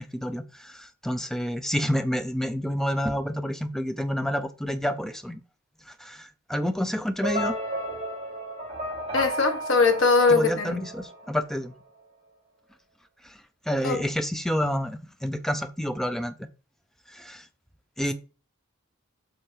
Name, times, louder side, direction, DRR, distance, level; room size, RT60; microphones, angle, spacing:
voice 1, 0.0-5.4 5.9-7.6 10.3-11.7 13.2-13.4 13.7-16.5 17.1-17.5 18.0-18.1, equal, ahead, 0.5 m, -29 dB
sound 1, 7.2-11.5, right 1 dB, 30° right, 3.9 m, -33 dB
voice 2, 9.1-10.9 13.8-14.1, left 4 dB, 60° left, 1.5 m, -21 dB
7.8 x 3.8 x 4.6 m
head